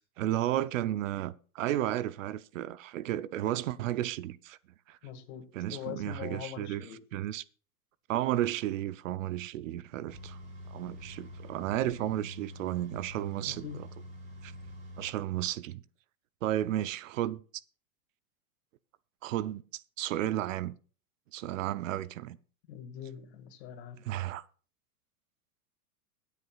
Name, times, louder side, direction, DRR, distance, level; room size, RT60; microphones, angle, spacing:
voice 1, 0.2-4.6 4.9-5.0 5.5-7.4 8.1-10.4 10.7-13.9 14.4-14.5 15.0-15.8 16.4-17.4 19.2-20.8 21.3-22.4 24.1-24.4, right 13 dB, 60° right, 0.6 m, -33 dB
voice 2, 5.0-7.0 13.5-13.8 22.7-24.0, left 9 dB, 45° left, 2.0 m, -43 dB
sound 1, 10.1-15.1, left 1 dB, 25° right, 6.2 m, -46 dB
22.5 x 8.2 x 2.4 m
supercardioid pair, 165°, 44 cm